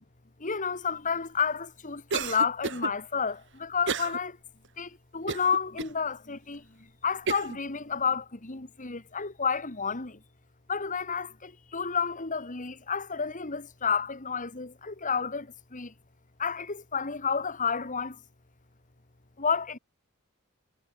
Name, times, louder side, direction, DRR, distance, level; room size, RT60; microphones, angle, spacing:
voice 1, 0.4-4.4 4.8-10.2 10.7-15.9 16.4-18.2 19.4-19.8, left 6 dB, 35° left, 1.9 m, -31 dB
Cough, 2.1-2.9 3.9-4.2 4.6-4.7 5.3-5.9 6.5-6.6 7.3-7.6, right 5 dB, 60° right, 1.4 m, -32 dB
head